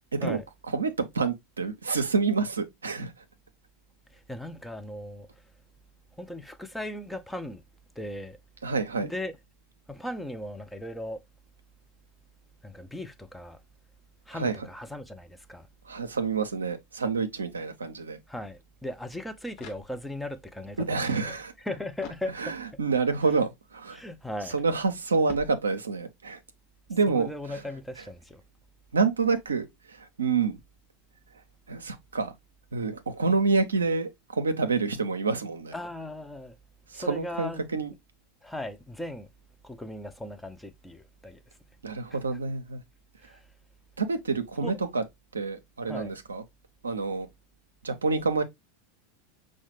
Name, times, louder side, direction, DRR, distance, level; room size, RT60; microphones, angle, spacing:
voice 1, 0.7-3.1 8.6-9.1 14.3-14.7 15.9-18.2 20.9-21.5 22.4-24.0 24.5-26.4 26.9-27.3 28.9-30.6 31.7-32.3 32.7-35.7 36.9-37.9 41.8-42.8 44.0-45.0 45.3-46.4 46.8-47.3 47.8-48.4, right 4 dB, 85° right, 0.5 m, -28 dB
voice 2, 4.1-5.3 6.2-7.6 8.0-8.4 9.0-9.4 9.9-11.2 12.6-13.6 14.3-15.7 18.3-22.6 23.9-24.6 27.1-28.4 35.7-36.6 36.9-37.6 38.4-39.3 39.6-41.4 42.1-42.2 43.2-43.5 44.6-44.8 45.8-46.1, left 1 dB, 5° left, 0.5 m, -38 dB
sound 1, 19.5-20.4 22.0-22.9 25.3-26.2, left 5 dB, 55° left, 0.6 m, -47 dB
5.5 x 2.2 x 3.0 m
hypercardioid pair, 90°, 0 cm